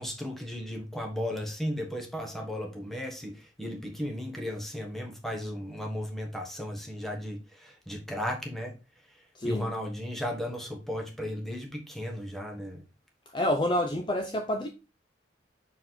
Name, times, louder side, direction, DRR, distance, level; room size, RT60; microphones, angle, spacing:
voice 1, 0.0-8.7 9.4-12.8, equal, ahead, 1.3 m, -35 dB
voice 2, 9.4-9.7 13.3-14.7, left 1 dB, 25° left, 0.5 m, -28 dB
6.1 x 4.4 x 3.9 m
head